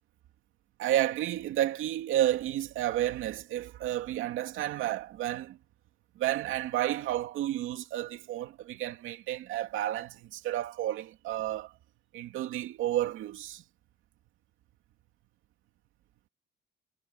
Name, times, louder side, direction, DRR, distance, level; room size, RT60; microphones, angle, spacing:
voice 1, 0.8-5.6 6.2-11.7 12.1-13.6, right 13 dB, 90° right, 2.6 m, -31 dB
cardioid pair, 90°, 20 cm